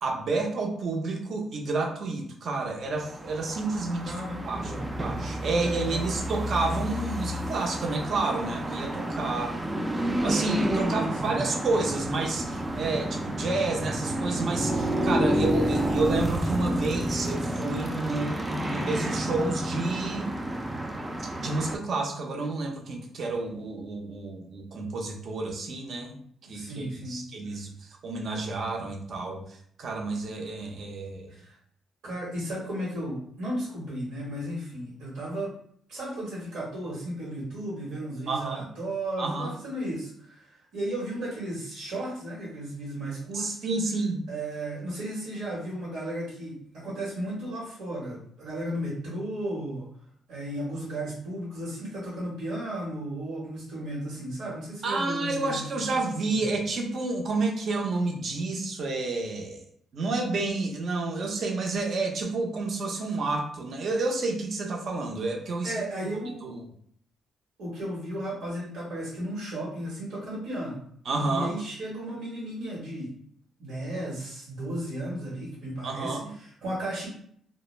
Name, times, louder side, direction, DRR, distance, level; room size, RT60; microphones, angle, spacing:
voice 1, 0.0-4.1 4.4-4.7 5.0-9.6 10.2-20.3 21.2-26.2 26.5-31.3 38.3-38.7 39.2-39.5 43.3-44.2 54.8-59.6 59.9-65.7 66.4-66.6 71.1-71.6 75.8-76.3, right 3 dB, 55° right, 1 dB, 0.6 m, -30 dB
sound 1, 2.9-21.8, right 1 dB, 15° right, 0.3 m, -30 dB
voice 2, 4.0-5.0 5.5-6.1 10.8-11.4 26.0-27.6 31.3-31.6 32.0-35.5 35.9-43.6 44.3-49.9 50.3-56.4 65.6-66.5 67.6-70.8 71.3-73.1 73.6-77.1, right 1 dB, 80° right, -7 dB, 1.0 m, -35 dB
2.2 x 2.0 x 3.1 m, 0.63 s
cardioid pair, 90°, 0 cm